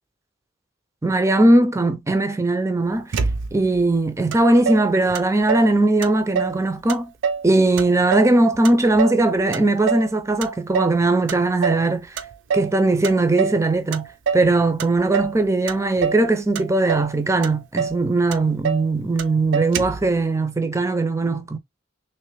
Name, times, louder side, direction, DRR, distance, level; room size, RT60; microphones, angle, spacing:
voice 1, 1.0-3.2 3.5-7.1 7.4-12.1 12.5-14.1 14.3-21.6, right 2 dB, 15° right, 0.5 m, -19 dB
Motor vehicle (road), 3.1-3.8 4.3-4.4 4.7-5.7 6.0-6.6 6.9-7.5 7.8-9.2 9.5-10.1 10.4-11.0 11.3-11.9 12.2-12.8 13.0-13.6 13.9-14.5 14.8-15.4 15.7-16.3 16.6-17.1 17.4-17.5 17.8-18.0 18.3-18.9 19.2-19.3 19.5-20.1, right 6 dB, 80° right, 0.5 m, -25 dB
3.2 x 3.1 x 3.0 m
head